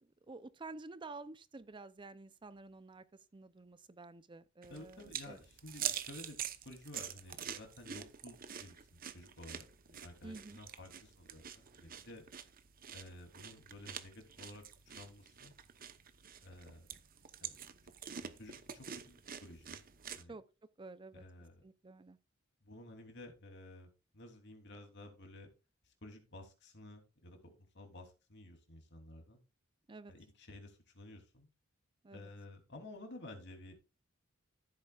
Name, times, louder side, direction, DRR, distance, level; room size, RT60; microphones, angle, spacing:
voice 1, 0.3-3.0 3.3-5.4 10.2-10.6 20.3-20.4 20.8-21.2 21.6-22.2 29.9-30.1 32.0-32.3, right 3 dB, 25° right, 0.5 m, -50 dB
sound 1, 4.6-20.2, right 9 dB, 45° right, 0.9 m, -46 dB
voice 2, 4.7-12.2 12.9-14.6 14.9-15.5 16.4-16.9 17.4-17.6 18.2-19.8 20.1-20.4 21.1-21.6 22.6-25.5 26.0-29.4 30.1-31.5 32.1-33.7, left 1 dB, 60° left, 3.1 m, -53 dB
15.0 x 8.2 x 2.4 m
head